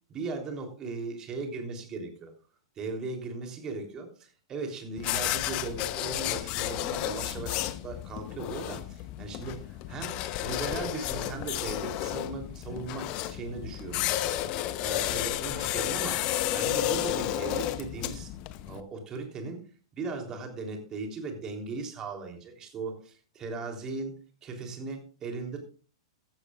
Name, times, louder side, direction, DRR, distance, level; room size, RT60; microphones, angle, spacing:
voice 1, 0.1-2.3 2.8-14.4 14.8-18.3 18.7-19.7 20.0-25.6, right 3 dB, 25° right, 3 dB, 3.5 m, -38 dB
sound 1, 5.0-18.8, left 13 dB, 40° left, 0.9 m, -32 dB
15.0 x 13.5 x 2.5 m, 0.38 s
figure-of-eight pair, 105°, 2 cm